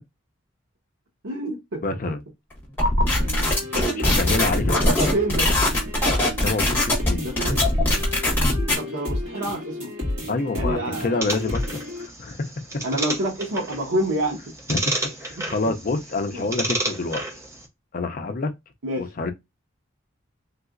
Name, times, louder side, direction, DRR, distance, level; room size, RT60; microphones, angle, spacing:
voice 1, 1.2-2.1 3.4-4.2 4.6-5.5 7.2-7.6 8.7-9.9 10.5-11.2 12.8-14.4 15.3-15.4 16.3-16.5 18.8-19.1, right 1 dB, 85° right, 1.0 m, -28 dB
voice 2, 1.8-2.2 3.8-5.2 6.4-7.3 10.3-12.4 14.7-14.9 15.2-17.3 17.9-18.5 19.0-19.3, left 3 dB, 40° left, 0.4 m, -27 dB
sound 1, 2.8-8.8, left 1 dB, 10° left, 1.2 m, -21 dB
sound 2, 3.1-12.1, left 1 dB, 55° right, 2.1 m, -31 dB
sound 3, 11.2-17.7, right 2 dB, 15° right, 0.5 m, -32 dB
3.2 x 2.8 x 2.4 m
head